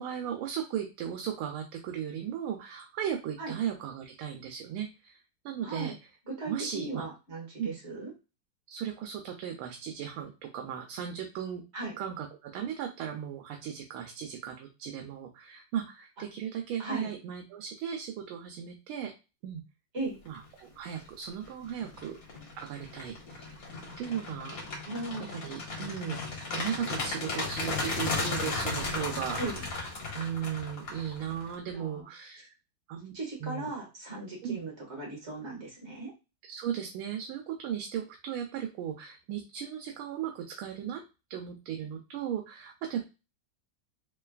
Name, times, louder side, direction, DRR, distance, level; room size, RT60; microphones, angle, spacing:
voice 1, 0.0-5.9 6.4-7.0 7.6-7.7 8.7-11.6 12.0-19.1 19.4-19.6 20.3-22.2 22.6-23.5 24.0-24.6 25.3-29.8 30.1-32.5 32.9-33.1 33.4-33.7 34.4-34.6 36.4-41.0 41.3-43.1, right 9 dB, 85° right, 3 dB, 1.5 m, -36 dB
voice 2, 5.6-5.9 6.3-8.1 11.7-11.9 16.8-17.1 19.9-20.2 24.8-25.3 29.4-29.6 31.7-32.1 33.1-36.1, right 2 dB, 35° right, -2 dB, 1.8 m, -37 dB
sound 1, 20.7-21.0 21.4-31.6, left 3 dB, 50° left, 1.5 m, -35 dB
3.6 x 3.2 x 2.3 m, 0.28 s
omnidirectional pair, 2.3 m